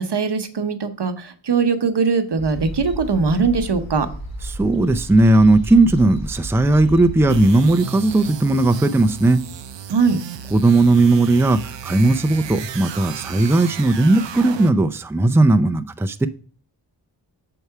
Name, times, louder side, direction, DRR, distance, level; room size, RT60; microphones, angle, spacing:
voice 1, 0.0-4.1 9.9-10.2, right 5 dB, 70° right, 8 dB, 1.0 m, -20 dB
sound 1, 2.4-7.4, right 1 dB, 55° left, 1.9 m, -33 dB
voice 2, 4.5-9.4 10.5-16.3, right 2 dB, 5° right, 9 dB, 0.4 m, -16 dB
sound 2, 7.3-14.9, right 8 dB, 90° right, 0.5 m, -34 dB
6.8 x 4.7 x 5.6 m, 0.42 s
wide cardioid pair, 80°, 42 cm